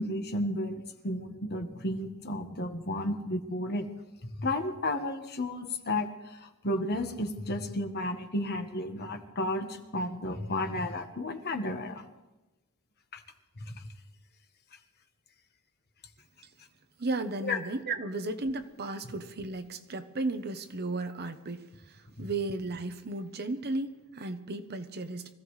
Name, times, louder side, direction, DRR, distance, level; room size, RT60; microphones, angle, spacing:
voice 1, 0.0-3.9 4.2-12.0 13.1-13.2 13.6-13.9 17.4-17.6 22.2-22.3, left 1 dB, 50° left, 1.4 m, -33 dB
voice 2, 17.0-25.3, right 2 dB, 50° right, 0.9 m, -34 dB
24.5 x 16.0 x 3.2 m
head